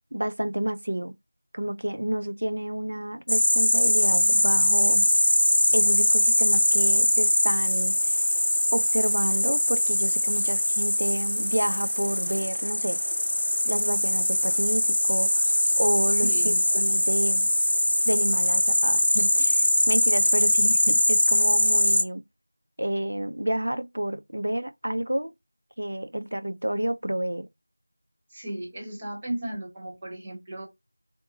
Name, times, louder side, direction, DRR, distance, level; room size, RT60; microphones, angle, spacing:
voice 1, 0.1-1.1 1.5-5.1 5.7-8.2 8.7-13.0 13.7-17.5 18.1-22.2 22.8-25.3 25.8-27.5, right 1 dB, 65° right, 0.5 m, -30 dB
sound 1, 3.3-22.0, left 1 dB, 60° left, 0.7 m, -22 dB
voice 2, 16.2-16.7 28.3-30.7, right 1 dB, 10° right, 0.6 m, -35 dB
3.9 x 3.5 x 2.7 m
figure-of-eight pair, 180°, 0 cm